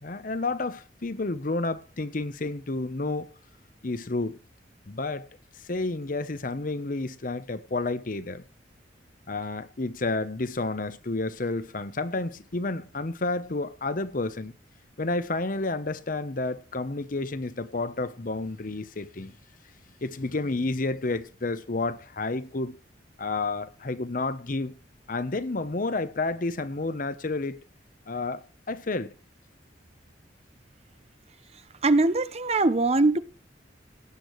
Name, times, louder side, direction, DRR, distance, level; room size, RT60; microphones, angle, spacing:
voice 1, 0.0-3.3 3.8-4.4 4.9-5.3 5.6-8.4 9.3-14.5 15.0-19.3 20.0-22.8 23.2-24.7 25.1-27.6 28.1-29.1, left 3 dB, 50° left, 0.8 m, -30 dB
voice 2, 31.8-33.2, right 2 dB, 35° right, 0.7 m, -21 dB
18.0 x 8.6 x 3.1 m
head